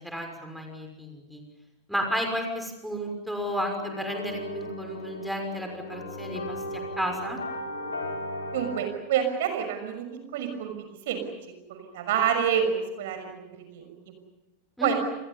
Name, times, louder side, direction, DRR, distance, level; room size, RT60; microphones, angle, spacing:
voice 1, 0.0-1.4 1.9-7.4 14.8-14.9, equal, ahead, 3 dB, 6.0 m, -32 dB
sound 1, 3.8-8.8, left 1 dB, 75° left, 6.1 m, -36 dB
voice 2, 8.5-10.0 10.3-10.7 11.1-11.2 11.7-14.1 14.8-14.9, right 8 dB, 55° right, 6 dB, 6.1 m, -28 dB
29.5 x 28.5 x 5.6 m, 0.99 s
figure-of-eight pair, 90°, 0 cm